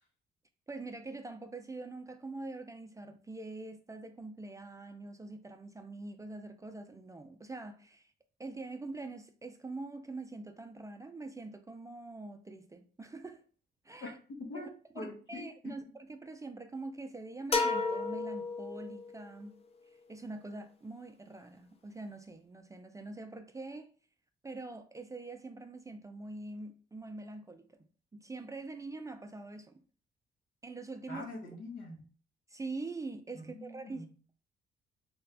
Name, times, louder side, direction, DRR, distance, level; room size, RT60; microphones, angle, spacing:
voice 1, 0.7-8.1 8.4-13.4 13.8-14.1 14.9-19.6 20.1-23.9 24.4-27.7 28.1-29.8 30.6-31.3 32.5-34.1, right 3 dB, 15° right, 0.4 m, -44 dB
voice 2, 14.0-14.7 14.9-15.8 31.1-32.1 33.3-34.1, left 2 dB, 75° left, 1.1 m, -44 dB
sound 1, 17.5-19.3, left 3 dB, 30° left, 0.6 m, -32 dB
3.4 x 2.3 x 3.3 m
cardioid pair, 90°, 20 cm